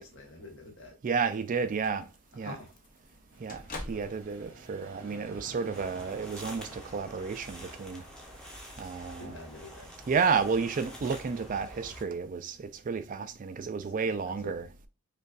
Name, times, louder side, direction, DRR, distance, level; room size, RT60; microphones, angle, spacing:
voice 1, 0.0-0.9 2.4-2.7 3.9-4.1 9.0-9.9 11.8-12.0 13.9-14.5, left 2 dB, 65° left, 1.1 m, -47 dB
voice 2, 1.0-2.1 2.4-2.6 3.4-3.6 3.9-8.0 8.8-9.4 10.1-14.7, right 5 dB, 40° right, 0.3 m, -31 dB
sound 1, 1.6-8.9, left 2 dB, 40° left, 0.7 m, -49 dB
sound 2, 3.3-11.4, right 2 dB, 80° right, 1.1 m, -52 dB
sound 3, 5.7-12.0, equal, 5° left, 0.7 m, -47 dB
5.1 x 2.5 x 2.3 m
head